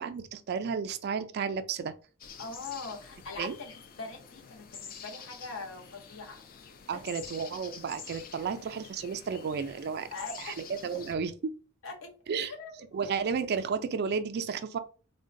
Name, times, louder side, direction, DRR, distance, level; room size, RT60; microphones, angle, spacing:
voice 1, 0.0-1.9 3.4-3.6 6.9-10.1 10.4-11.3 12.3-12.5 12.9-14.8, right 6 dB, 50° right, 0.3 m, -32 dB
sound 1, 2.2-11.2, left 6 dB, 45° left, 0.4 m, -48 dB
voice 2, 2.4-6.7 6.9-7.0 10.1-10.6 11.8-12.1 12.6-13.2, left 3 dB, 70° left, 0.9 m, -42 dB
3.7 x 2.1 x 2.5 m
head